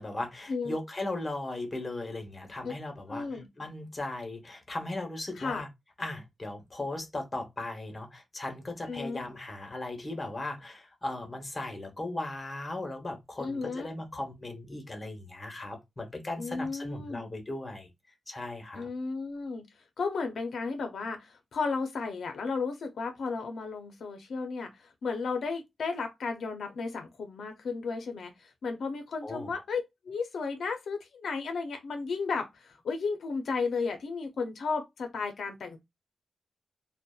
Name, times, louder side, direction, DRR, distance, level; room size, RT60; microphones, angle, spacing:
voice 1, 0.0-5.7 6.0-17.9 18.3-18.9 29.2-29.5, left 2 dB, 25° left, 0.9 m, -37 dB
voice 2, 3.1-3.5 5.4-5.6 8.9-9.3 13.4-13.9 16.4-17.3 18.7-19.7 20.0-29.8 30.0-35.8, left 4 dB, 85° left, 0.4 m, -34 dB
2.6 x 2.1 x 2.3 m
cardioid pair, 85°, 0 cm